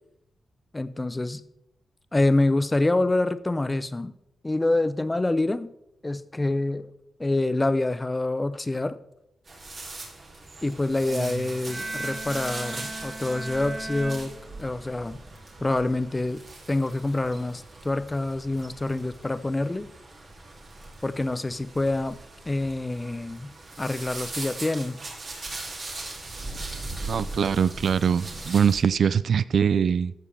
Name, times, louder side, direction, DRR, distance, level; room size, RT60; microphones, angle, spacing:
voice 1, 0.7-1.4 2.1-4.1 4.4-5.7 6.0-6.9 7.2-9.0 10.6-15.2 15.6-16.4 16.7-19.9 21.0-22.2 22.5-25.0, left 2 dB, 20° left, 14 dB, 0.6 m, -26 dB
sound 1, 9.5-28.8, right 2 dB, 50° right, 2.8 m, -40 dB
Bowed string instrument, 11.7-15.0, right 2 dB, 35° right, 1.4 m, -37 dB
voice 2, 27.0-30.1, right 7 dB, 65° right, 17 dB, 0.3 m, -23 dB
14.0 x 6.6 x 3.5 m, 0.80 s
cardioid pair, 65°, 0 cm